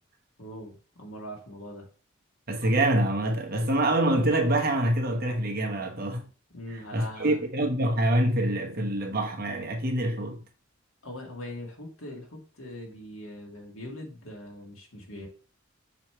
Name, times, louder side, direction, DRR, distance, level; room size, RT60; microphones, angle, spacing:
voice 1, 0.4-1.9 6.5-7.4 11.0-15.3, left 1 dB, 85° left, 2.0 m, -41 dB
voice 2, 2.5-6.2 6.9-10.4, right 1 dB, 50° right, 1.3 m, -25 dB
6.8 x 3.2 x 4.5 m
head